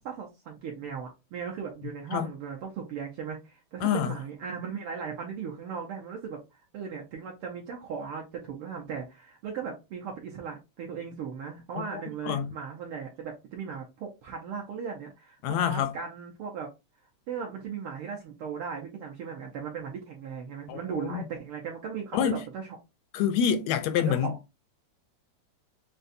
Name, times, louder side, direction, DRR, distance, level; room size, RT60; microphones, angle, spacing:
voice 1, 0.0-6.4 6.7-16.7 17.3-22.7 24.0-24.4, right 6 dB, 70° right, 1.3 m, -37 dB
voice 2, 3.8-4.2 11.7-12.5 15.4-15.9 20.7-21.2 22.1-22.4 23.1-24.4, left 8 dB, 80° left, 1.6 m, -27 dB
6.5 x 2.3 x 2.6 m
omnidirectional pair, 3.3 m